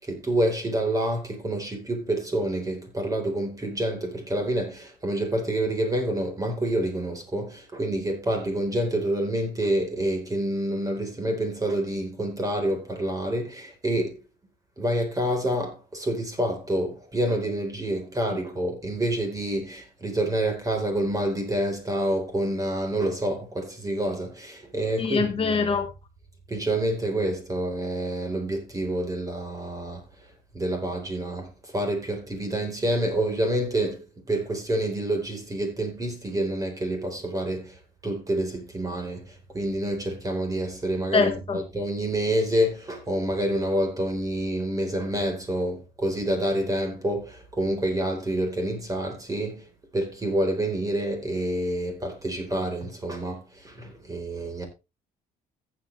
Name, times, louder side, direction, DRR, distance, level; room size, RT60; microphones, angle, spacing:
voice 1, 0.0-14.2 14.8-25.7 26.5-30.0 30.5-49.7 49.9-54.7, right 1 dB, 20° right, 4.0 m, -28 dB
voice 2, 25.0-25.9 41.1-41.6, left 4 dB, 35° left, 1.3 m, -24 dB
14.5 x 7.9 x 3.3 m
cardioid pair, 110°, 17 cm